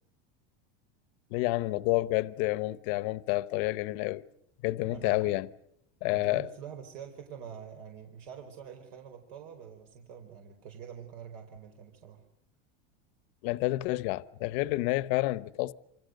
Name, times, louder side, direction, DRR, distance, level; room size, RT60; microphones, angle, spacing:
voice 1, 1.3-4.2 4.6-5.5 6.0-6.5 13.4-15.7, left 19 dB, 60° left, 1.1 m, -29 dB
voice 2, 4.9-5.3 6.1-12.2, right 8 dB, 65° right, 4.7 m, -46 dB
28.5 x 26.5 x 6.7 m
supercardioid pair, 155°, 30 cm